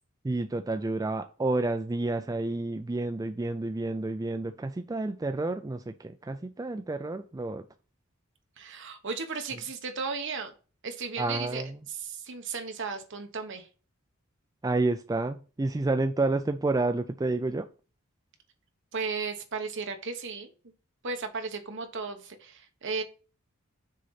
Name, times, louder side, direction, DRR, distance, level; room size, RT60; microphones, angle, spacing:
voice 1, 0.2-7.6 11.2-11.8 14.6-17.7, right 2 dB, 15° right, 0.3 m, -30 dB
voice 2, 8.6-10.5 10.8-13.7 18.9-20.5 21.0-23.0, right 4 dB, 60° right, 1.2 m, -35 dB
6.3 x 4.0 x 5.7 m
head